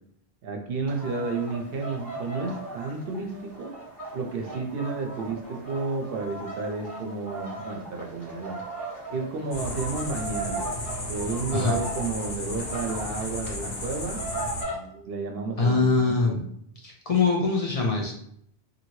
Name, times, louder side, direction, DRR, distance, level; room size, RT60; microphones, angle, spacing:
voice 1, 0.4-3.7 4.1-8.6 9.1-10.7 11.1-14.2 14.7-16.4, right 4 dB, 70° right, 3 dB, 0.7 m, -32 dB
sound 1, 0.9-14.8, right 3 dB, 20° right, 1.2 m, -38 dB
sound 2, 9.5-14.6, left 1 dB, 65° left, 0.8 m, -34 dB
voice 2, 15.6-16.4 16.8-18.1, left 4 dB, 50° left, -1 dB, 0.5 m, -23 dB
3.0 x 2.6 x 2.7 m, 0.69 s
omnidirectional pair, 1.1 m